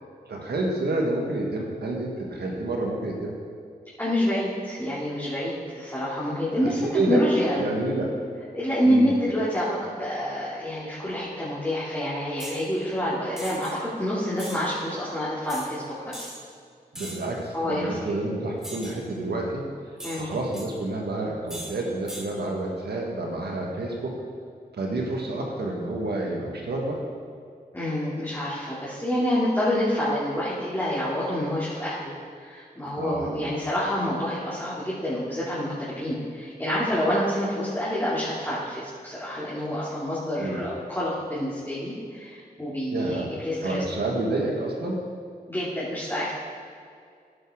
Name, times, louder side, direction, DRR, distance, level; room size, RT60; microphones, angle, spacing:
voice 1, 0.3-3.3 6.6-7.2 7.6-8.1 8.8-9.1 16.9-19.7 20.2-24.2 24.7-27.1 33.0-33.5 40.4-40.6 42.9-43.3 43.6-45.0, right 2 dB, 90° right, 0 dB, 1.6 m, -29 dB
voice 2, 4.0-6.8 7.1-7.6 8.5-16.3 17.5-18.0 20.0-20.3 27.7-32.1 32.4-43.8 45.5-46.4, equal, 15° left, -10 dB, 2.9 m, -27 dB
sound 1, 12.4-12.6 13.4-13.7 14.4-14.6 15.5-15.7 16.1-16.4 16.9-17.3 18.6-19.0 20.0-20.7 21.5-21.7 22.1-22.3, equal, 5° right, 2.5 m, -39 dB
11.0 x 9.6 x 3.8 m, 2.3 s
cardioid pair, 50°, 16 cm